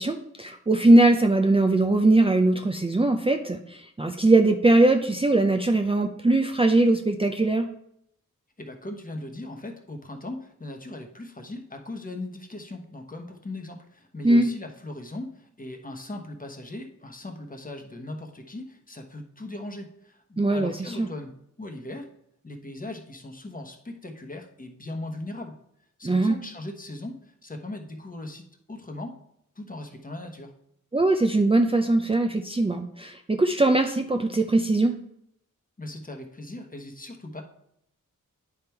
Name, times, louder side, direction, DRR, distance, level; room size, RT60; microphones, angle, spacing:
voice 1, 0.0-7.7 14.2-14.5 20.4-21.1 26.0-26.4 30.9-34.9, right 2 dB, 15° right, 4 dB, 0.5 m, -21 dB
voice 2, 8.6-22.1 22.4-25.6 26.0-29.2 29.5-30.5 35.8-37.4, left 1 dB, 25° left, 3 dB, 1.1 m, -39 dB
9.7 x 3.6 x 4.5 m, 0.74 s
cardioid pair, 55°, 32 cm